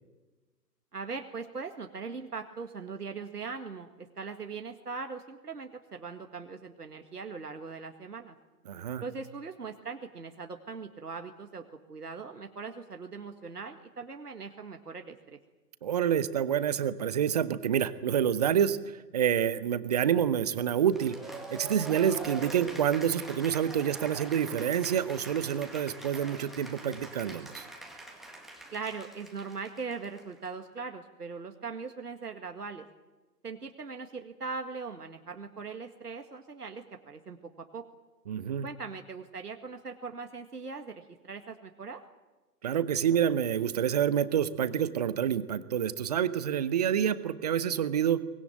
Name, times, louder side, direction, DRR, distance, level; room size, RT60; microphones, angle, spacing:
voice 1, 0.9-8.4 9.0-15.4 28.7-32.8 33.4-37.8 38.6-42.0, right 4 dB, 65° right, 5 dB, 2.0 m, -40 dB
voice 2, 8.7-9.0 15.8-18.8 19.1-21.2 21.5-27.7 38.3-38.7 42.6-48.2, right 9 dB, 25° right, 15 dB, 0.9 m, -27 dB
Cheering / Applause, 20.9-30.5, right 2 dB, ahead, 2.0 m, -44 dB
24.0 x 20.5 x 9.0 m, 1.2 s
figure-of-eight pair, 130°, 50 cm